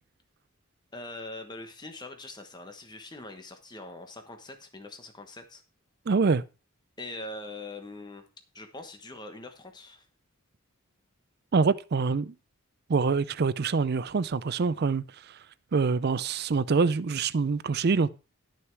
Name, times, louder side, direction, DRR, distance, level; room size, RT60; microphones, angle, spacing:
voice 1, 0.9-5.6 7.0-8.2 8.5-10.1, left 2 dB, 20° left, 1.1 m, -42 dB
voice 2, 6.1-6.4 11.5-12.3 12.9-15.0 15.7-18.1, right 4 dB, 45° right, 0.4 m, -25 dB
11.0 x 6.5 x 4.6 m
head